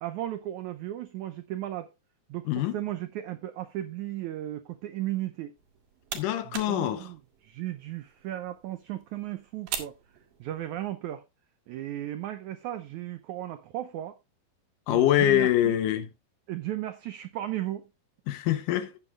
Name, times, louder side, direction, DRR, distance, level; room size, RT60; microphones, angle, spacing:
voice 1, 0.0-1.9 2.3-5.5 6.4-10.0 10.4-11.2 11.7-14.2 14.9-15.8 16.5-17.9, right 13 dB, 90° right, 1.6 m, -35 dB
sound 1, 5.6-10.9, right 8 dB, 70° right, 3.4 m, -42 dB
voice 2, 6.1-7.1 14.9-16.1 18.3-18.9, left 13 dB, 75° left, 2.2 m, -24 dB
15.0 x 9.1 x 2.4 m
omnidirectional pair, 4.3 m